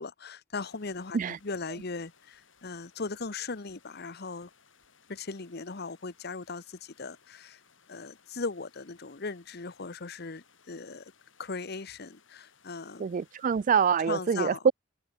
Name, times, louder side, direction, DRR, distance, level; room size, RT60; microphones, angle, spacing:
voice 1, 0.0-4.5 5.1-7.6 7.9-11.1 11.4-13.1 14.0-14.7, left 4 dB, 55° left, 1.1 m, -38 dB
sound 1, 0.6-14.0, left 6 dB, 85° left, 6.6 m, -63 dB
voice 2, 13.0-14.7, right 6 dB, 45° right, 0.3 m, -25 dB
open air
head